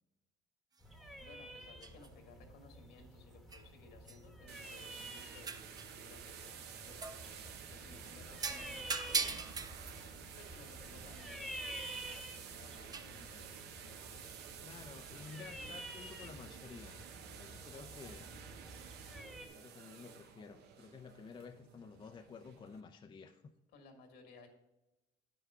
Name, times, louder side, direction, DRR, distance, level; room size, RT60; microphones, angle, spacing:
sound 1, 0.8-19.5, right 1 dB, ahead, 1.1 m, -50 dB
sound 2, 0.8-0.9 1.8-2.1 3.5-3.7 4.1-4.2 5.4-6.0 7.0-7.7 8.4-12.2 12.9-13.2, right 5 dB, 25° right, 0.5 m, -42 dB
voice 1, 1.2-9.3 10.4-14.4 23.7-24.5, left 3 dB, 75° left, 4 dB, 1.9 m, -59 dB
sound 3, 4.5-22.8, right 8 dB, 75° right, 0.9 m, -52 dB
voice 2, 13.2-13.6 14.6-17.0 17.3-18.3 19.5-23.5, left 5 dB, 30° left, 5 dB, 0.6 m, -52 dB
9.4 x 5.8 x 4.8 m, 0.95 s
cardioid pair, 110°, 17 cm